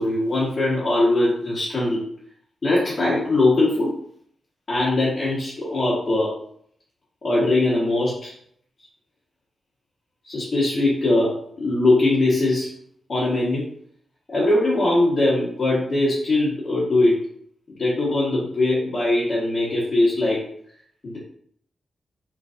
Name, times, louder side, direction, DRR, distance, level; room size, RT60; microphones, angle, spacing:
voice 1, 0.0-2.0 2.6-3.9 4.7-6.3 7.2-8.3 10.2-12.7 13.1-13.7 14.3-17.2 17.7-20.4 21.0-21.2, left 2 dB, 45° left, -8 dB, 1.4 m, -21 dB
3.8 x 3.1 x 2.5 m, 0.66 s
cardioid pair, 60°, 0 cm